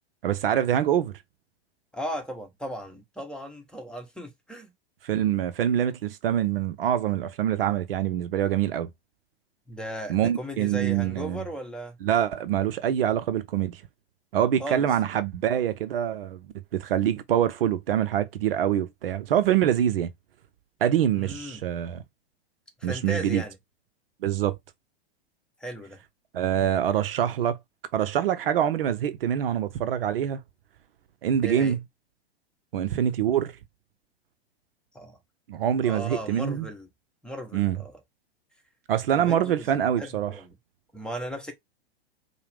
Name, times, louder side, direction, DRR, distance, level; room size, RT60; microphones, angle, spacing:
voice 1, 0.2-1.1 5.0-8.9 10.1-11.4 12.0-13.8 14.3-16.4 16.7-20.1 20.8-22.0 22.8-23.4 24.2-24.6 26.3-27.6 27.9-30.4 31.2-31.8 32.7-33.6 35.5-36.7 37.5-37.8 38.9-40.3, right 10 dB, 60° right, 0.6 m, -25 dB
voice 2, 1.9-4.7 9.7-12.0 14.6-14.9 21.1-21.6 22.8-23.6 25.6-26.0 31.4-31.8 34.9-35.2 35.8-36.9 37.2-38.0 39.2-40.5 40.9-41.5, right 1 dB, 5° left, 1.0 m, -36 dB
4.6 x 2.1 x 3.4 m
figure-of-eight pair, 100°, 32 cm